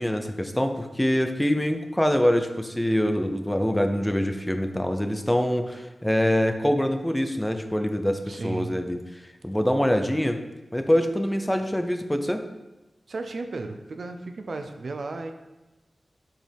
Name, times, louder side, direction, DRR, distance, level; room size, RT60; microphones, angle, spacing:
voice 1, 0.0-9.0 9.4-10.4 10.7-12.4, equal, 10° left, 7 dB, 0.6 m, -24 dB
voice 2, 8.3-8.7 13.1-15.3, right 3 dB, 70° right, 6 dB, 0.6 m, -34 dB
7.4 x 5.1 x 3.5 m, 1.1 s
cardioid pair, 55°, 0 cm